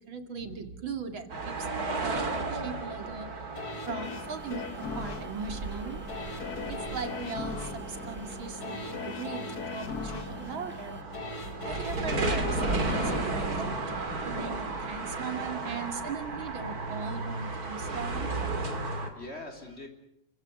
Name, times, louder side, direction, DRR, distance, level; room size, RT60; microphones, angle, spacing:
voice 1, 0.0-3.3 3.9-11.0 11.7-18.3, right 5 dB, 80° right, 7 dB, 3.1 m, -39 dB
sound 1, 1.3-19.1, right 3 dB, 50° right, 3.2 m, -34 dB
sound 2, 3.6-14.5 14.9-15.0, left 4 dB, 50° left, 2.4 m, -39 dB
sound 3, 4.0-11.0, left 2 dB, 5° right, 1.9 m, -48 dB
voice 2, 18.7-19.9, left 2 dB, 30° left, 4 dB, 4.0 m, -45 dB
29.5 x 16.0 x 9.8 m, 0.75 s
omnidirectional pair, 2.1 m